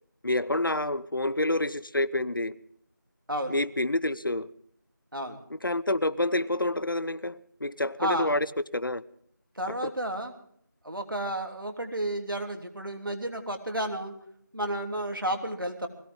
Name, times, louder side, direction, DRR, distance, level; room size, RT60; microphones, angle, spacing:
voice 1, 0.2-2.6 3.5-4.5 5.5-9.0 9.8-9.9, left 1 dB, 90° left, 19 dB, 0.8 m, -28 dB
voice 2, 8.0-8.3 9.6-10.3 10.8-14.1 14.5-15.9, right 1 dB, 90° right, 4 dB, 3.1 m, -32 dB
21.0 x 17.5 x 3.7 m, 0.65 s
figure-of-eight pair, 175°, 11 cm